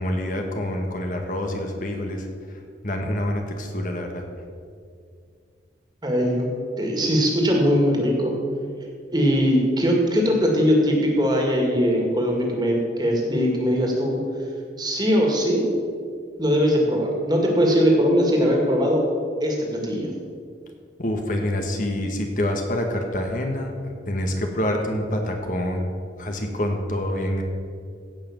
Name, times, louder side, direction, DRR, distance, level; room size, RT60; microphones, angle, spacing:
voice 1, 0.0-2.2 2.8-4.2 21.0-23.7 24.1-25.9 26.2-27.4, left 1 dB, 45° left, 3 dB, 1.3 m, -26 dB
voice 2, 6.0-6.5 6.8-8.3 9.1-14.2 14.8-15.7 16.4-19.0 19.4-20.1, equal, 20° right, 0 dB, 2.1 m, -20 dB
16.0 x 5.9 x 7.3 m, 2.3 s
head